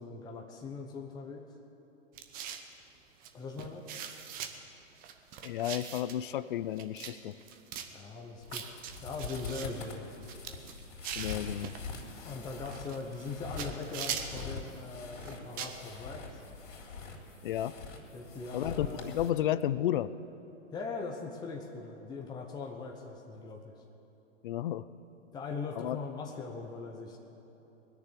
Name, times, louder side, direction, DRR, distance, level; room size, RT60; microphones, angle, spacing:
voice 1, 0.0-1.5 3.3-3.9 7.9-8.8 9.0-10.1 12.2-16.4 18.1-19.1 20.7-23.7 25.3-27.2, left 4 dB, 10° left, 0 dB, 0.9 m, -41 dB
sound 1, 2.1-2.7 3.2-3.3 3.6-4.5 5.0-6.2 6.8-7.1 7.4-7.9 8.5-9.7 10.1-11.8 12.7-13.3 13.6-14.5 15.2-15.8, right 8 dB, 20° right, 0.9 m, -41 dB
voice 2, 5.4-7.4 11.2-11.7 17.4-17.7 18.5-20.1 24.4-24.8 25.8-26.0, left 12 dB, 45° left, 16 dB, 0.5 m, -32 dB
sound 2, 8.4-19.3, left 4 dB, 70° left, 3.5 m, -44 dB
20.5 x 6.9 x 9.9 m, 3.0 s
hypercardioid pair, 130°, 38 cm